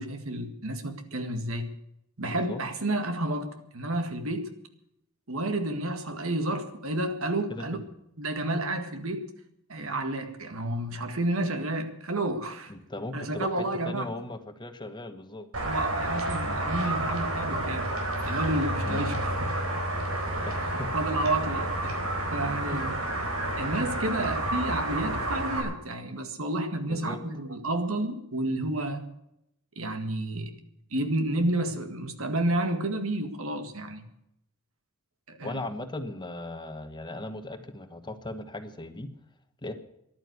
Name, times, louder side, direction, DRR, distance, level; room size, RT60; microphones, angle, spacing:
voice 1, 0.0-1.7 2.2-4.5 5.3-7.8 8.2-9.2 9.7-12.7 13.1-14.1 15.6-17.9 18.2-19.6 20.7-22.0 22.3-23.0 23.6-29.0 29.8-30.5 30.9-34.1 35.3-35.6, right 1 dB, 75° right, 1.9 m, -30 dB
voice 2, 2.3-2.6 7.5-7.9 12.7-15.5 18.9-19.1 20.4-20.9 22.7-22.9 26.9-27.2 35.4-39.1 39.6-39.7, left 1 dB, 20° left, 1.2 m, -38 dB
sound 1, 15.5-25.6, right 1 dB, 90° right, 4.3 m, -30 dB
14.0 x 11.5 x 8.2 m
head